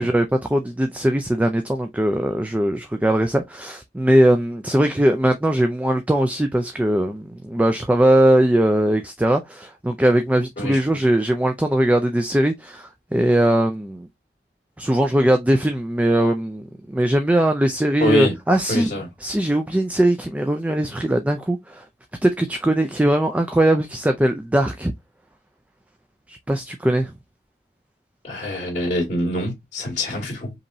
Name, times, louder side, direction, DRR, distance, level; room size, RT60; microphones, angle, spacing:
voice 1, 0.0-14.1 14.8-18.9 19.2-21.8 22.2-24.9 26.3-27.1, right 1 dB, 10° right, 0.3 m, -20 dB
voice 2, 18.0-18.3 18.7-19.1 28.2-30.5, equal, 40° left, 2.1 m, -24 dB
5.3 x 3.0 x 2.6 m
head